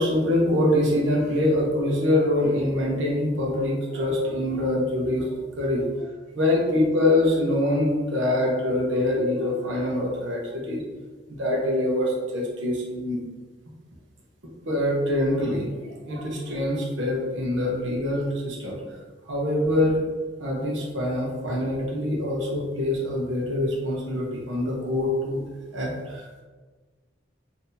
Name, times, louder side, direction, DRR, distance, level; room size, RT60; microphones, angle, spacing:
voice 1, 0.0-5.8 6.3-10.8 11.3-13.2 14.7-18.8 19.2-20.0 20.4-25.4 25.7-26.4, left 1 dB, 85° right, -2 dB, 0.8 m, -24 dB
3.9 x 2.7 x 2.7 m, 1.4 s
head